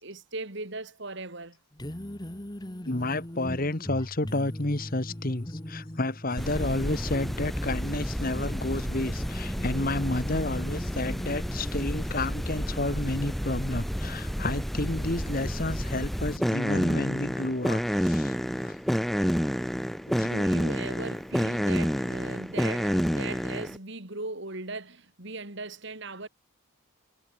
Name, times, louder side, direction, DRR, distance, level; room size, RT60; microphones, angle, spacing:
voice 1, 0.0-1.6 20.2-26.3, right 3 dB, 55° right, 3.1 m, -38 dB
sound 1, 1.7-14.4, left 1 dB, 20° left, 1.3 m, -41 dB
voice 2, 2.8-18.7 20.1-20.3, left 2 dB, 40° left, 1.6 m, -31 dB
sound 2, 6.4-23.8, equal, ahead, 1.6 m, -29 dB
head